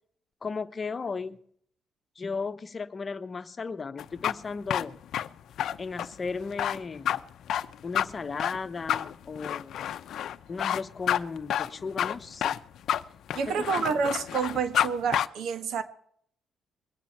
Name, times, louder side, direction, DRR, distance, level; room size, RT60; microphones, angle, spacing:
voice 1, 0.4-1.4 2.2-5.0 5.8-7.2 7.8-9.8 10.5-12.6 13.5-13.9, left 4 dB, 35° left, 1.0 m, -35 dB
sound 1, 4.0-14.9 15.1-15.3, left 10 dB, 70° left, 0.6 m, -29 dB
voice 2, 13.3-15.8, right 6 dB, 75° right, 1.5 m, -28 dB
22.0 x 9.2 x 4.3 m
cardioid pair, 90°, 0 cm